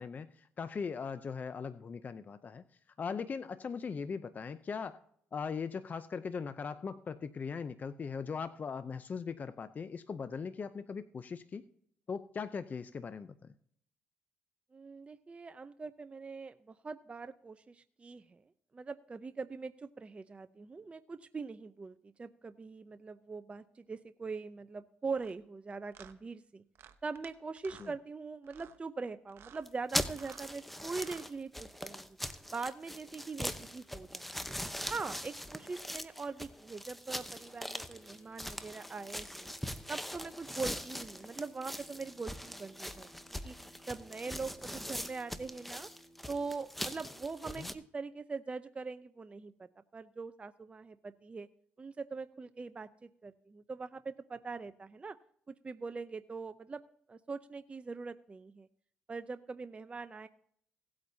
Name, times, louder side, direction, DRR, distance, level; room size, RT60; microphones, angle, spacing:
voice 1, 0.0-2.6 3.0-5.0 5.3-11.6 12.1-13.5 27.8-27.9 47.6-47.7, left 5 dB, 40° left, 12 dB, 0.6 m, -39 dB
voice 2, 14.7-18.4 18.7-26.6 27.0-32.2 32.5-34.6 34.9-39.5 39.9-43.1 43.4-43.5 43.9-45.9 46.3-51.5 51.8-55.2 55.5-56.8 57.1-58.7 59.1-60.3, right 4 dB, 25° right, 12 dB, 0.5 m, -42 dB
sound 1, 25.2-25.3 25.9-26.1 26.7-27.3 27.6-27.9 28.4-28.8 29.3-29.6 30.1-30.5 30.9-31.3, right 9 dB, 65° right, 0.9 m, -55 dB
sound 2, 29.7-47.7, equal, 5° left, 0.9 m, -41 dB
sound 3, 37.1-46.5, left 1 dB, 65° left, 5.0 m, -61 dB
17.5 x 8.6 x 2.8 m, 0.65 s
supercardioid pair, 75°, 4 cm